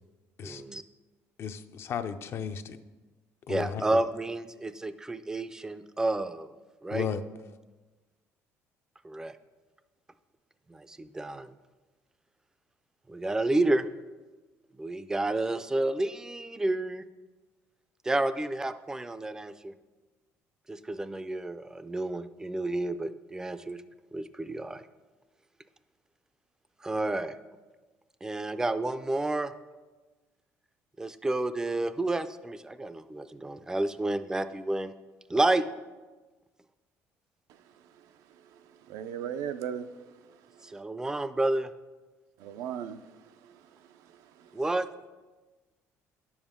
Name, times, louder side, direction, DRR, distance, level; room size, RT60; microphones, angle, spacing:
voice 1, 0.4-0.8 3.5-6.5 6.8-7.1 9.0-9.4 10.7-11.5 13.1-13.9 14.8-17.0 18.0-19.7 20.7-23.8 24.1-24.8 26.8-27.4 28.2-29.5 31.0-34.9 35.3-35.6 40.6-41.7 44.5-44.9, right 2 dB, 10° right, 0.4 m, -30 dB
voice 2, 1.4-2.8 3.5-3.8 6.9-7.2, left 7 dB, 45° left, 0.5 m, -34 dB
voice 3, 38.9-39.9 42.4-43.0 43.4-43.6, right 9 dB, 80° right, 0.5 m, -36 dB
10.0 x 7.1 x 3.6 m
cardioid pair, 130°, 6 cm